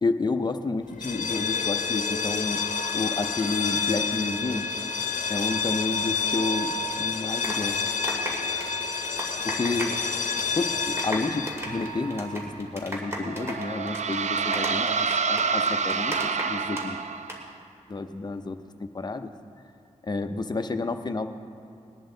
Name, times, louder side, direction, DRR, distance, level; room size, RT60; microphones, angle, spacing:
voice 1, 0.0-2.6 2.9-4.7 5.3-7.8 9.4-10.0 10.5-17.0 17.9-19.3 20.0-21.3, left 3 dB, 35° left, 7 dB, 0.6 m, -30 dB
sound 1, 0.9-12.6, left 5 dB, 80° left, 0.7 m, -29 dB
sound 2, 7.1-10.1 10.3-10.6 10.8-16.8 17.1-17.4, equal, 20° right, 2.3 m, -34 dB
sound 3, 13.1-17.5, right 5 dB, 70° right, 0.5 m, -27 dB
20.0 x 11.0 x 3.9 m, 2.7 s
wide cardioid pair, 105°, 13 cm